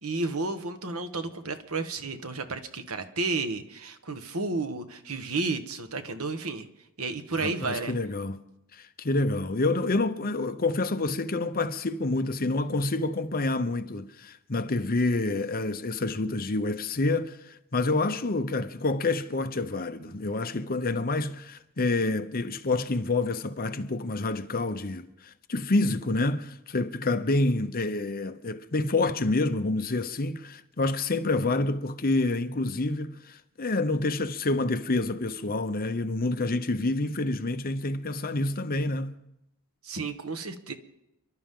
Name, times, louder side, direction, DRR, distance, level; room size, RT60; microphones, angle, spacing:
voice 1, 0.0-6.7 7.0-7.9 39.8-40.7, right 3 dB, 70° right, 1.4 m, -32 dB
voice 2, 7.4-8.4 8.7-39.2, left 2 dB, 40° left, 0.9 m, -28 dB
29.5 x 11.5 x 3.8 m
head